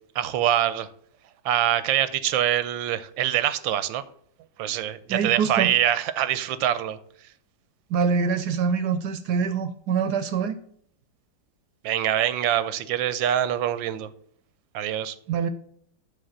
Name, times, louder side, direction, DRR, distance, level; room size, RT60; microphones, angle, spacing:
voice 1, 0.1-0.9 1.4-4.0 4.6-7.0 11.8-14.1 14.7-15.1, right 11 dB, 85° right, 1.3 m, -24 dB
voice 2, 5.1-5.7 7.9-10.6 15.3-15.5, right 6 dB, 70° right, 1.0 m, -24 dB
10.0 x 3.9 x 7.0 m
omnidirectional pair, 2.1 m